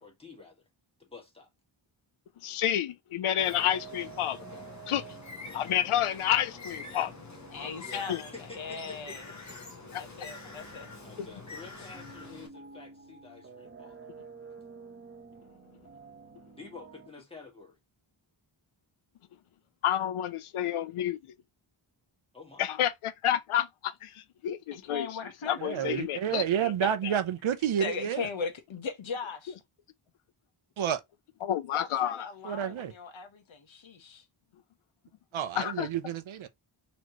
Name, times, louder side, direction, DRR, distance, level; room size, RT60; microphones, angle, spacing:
voice 1, 0.0-0.7 1.0-1.5 7.6-9.8 11.0-14.0 16.5-17.8 22.3-22.7, left 4 dB, 10° left, 1.7 m, -49 dB
voice 2, 2.4-4.4 4.9-5.1 5.5-7.1 7.9-8.2 9.9-10.0 19.8-21.2 22.6-25.2 25.5-27.2 31.4-32.3 35.6-35.9, left 11 dB, 85° left, 0.6 m, -30 dB
Bird, 3.4-12.5, left 3 dB, 35° left, 1.1 m, -46 dB
sound 1, 3.4-17.1, right 6 dB, 25° right, 1.1 m, -51 dB
voice 3, 7.5-9.2 10.0-10.9 24.7-25.8 27.8-29.6 31.7-34.2, left 5 dB, 65° left, 1.2 m, -38 dB
voice 4, 25.6-28.3 30.8-31.0 32.4-32.9 35.3-36.5, right 9 dB, 70° right, 0.7 m, -30 dB
4.3 x 3.0 x 3.0 m
wide cardioid pair, 135°, 49 cm